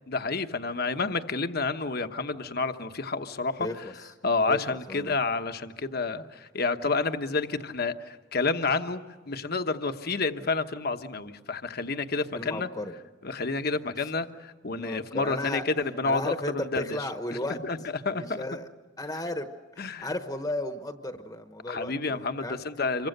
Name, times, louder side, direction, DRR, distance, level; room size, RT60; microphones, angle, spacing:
voice 1, 0.1-3.7 4.2-12.7 13.2-17.0 17.5-17.8 18.0-18.4 19.8-20.1 21.7-23.1, left 3 dB, 50° left, 8 dB, 1.1 m, -29 dB
voice 2, 3.6-4.1 4.5-5.2 12.3-12.9 14.7-15.6 16.0-17.6 18.1-18.7 19.0-19.5 19.7-22.6, left 1 dB, 20° left, 7 dB, 1.1 m, -35 dB
27.0 x 23.5 x 6.7 m, 1.3 s
head